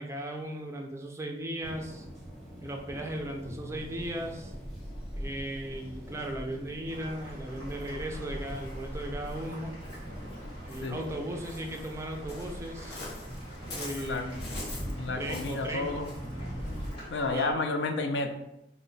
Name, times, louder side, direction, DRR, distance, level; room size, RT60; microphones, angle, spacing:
voice 1, 0.0-2.1 2.6-4.5 5.2-9.7 10.6-13.0 13.7-14.4 15.1-16.0 17.3-17.6, right 1 dB, 15° right, 2 dB, 0.3 m, -37 dB
sound 1, 1.6-16.9, equal, ahead, 0.9 m, -43 dB
Waves surf, 3.7-17.6, equal, 65° left, 0.8 m, -44 dB
sound 2, 6.9-17.5, equal, 30° left, 1.2 m, -48 dB
voice 2, 13.9-14.2 15.0-16.1 17.1-18.3, left 3 dB, 85° left, 5 dB, 0.4 m, -31 dB
2.8 x 2.1 x 3.9 m, 0.87 s
head